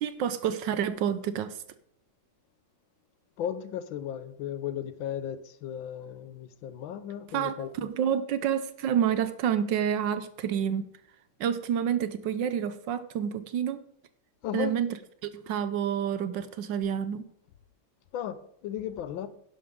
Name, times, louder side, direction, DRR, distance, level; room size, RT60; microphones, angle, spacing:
voice 1, 0.0-1.6 7.3-10.8 11.4-13.8 14.5-15.0 15.2-17.3, right 9 dB, 70° right, 1.3 m, -29 dB
voice 2, 3.4-7.7 14.4-14.8 18.1-19.3, left 9 dB, 75° left, 1.5 m, -35 dB
11.0 x 11.0 x 3.7 m
omnidirectional pair, 2.2 m